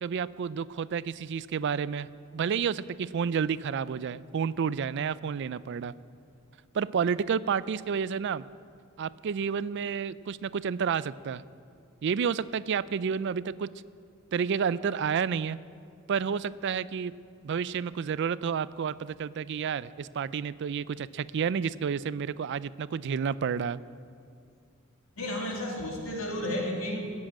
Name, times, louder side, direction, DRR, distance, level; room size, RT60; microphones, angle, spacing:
voice 1, 0.0-2.1 2.3-5.9 6.7-8.4 9.0-11.4 12.0-13.7 14.3-15.6 16.1-17.1 17.4-23.8, right 6 dB, 55° right, 18 dB, 0.4 m, -30 dB
voice 2, 25.2-27.2, left 1 dB, 75° left, -1 dB, 2.6 m, -32 dB
16.5 x 7.6 x 8.8 m, 2.3 s
head